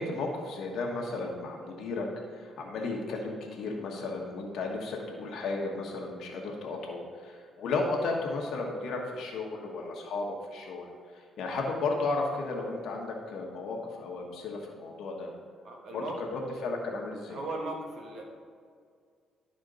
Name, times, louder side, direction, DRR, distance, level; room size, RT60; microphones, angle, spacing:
voice 1, 0.0-2.1 2.3-15.3 15.9-17.4, left 3 dB, 75° left, 0 dB, 1.1 m, -34 dB
voice 2, 15.6-16.2 17.3-18.2, right 2 dB, 60° right, 1 dB, 1.5 m, -37 dB
12.0 x 4.3 x 3.9 m, 2.1 s
cardioid pair, 90°, 0 cm